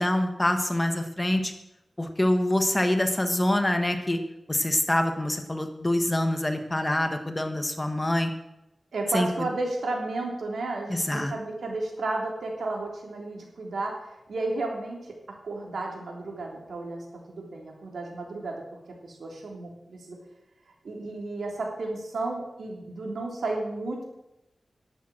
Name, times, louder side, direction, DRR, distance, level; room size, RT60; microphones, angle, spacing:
voice 1, 0.0-1.5 2.0-4.2 4.5-8.3 9.1-9.3 10.9-11.3, left 1 dB, 20° left, 6 dB, 1.6 m, -25 dB
voice 2, 8.9-15.1 15.4-18.6 19.0-20.2 20.8-24.0, right 2 dB, 85° right, 0 dB, 3.3 m, -33 dB
11.0 x 9.0 x 7.6 m, 0.88 s
wide cardioid pair, 80°, 0 cm